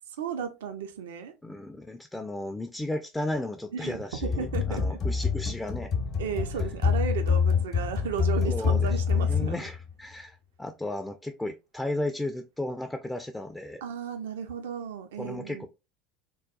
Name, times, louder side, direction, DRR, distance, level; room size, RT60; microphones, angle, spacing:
voice 1, 0.2-1.3 3.7-5.0 6.2-9.6 13.8-15.7, right 7 dB, 70° right, 0.3 m, -34 dB
voice 2, 1.4-5.9 8.4-13.8 15.2-15.7, left 1 dB, 10° left, 0.3 m, -34 dB
sound 1, 4.2-9.9, left 6 dB, 45° left, 0.8 m, -26 dB
3.7 x 2.2 x 2.3 m
figure-of-eight pair, 70°, 0 cm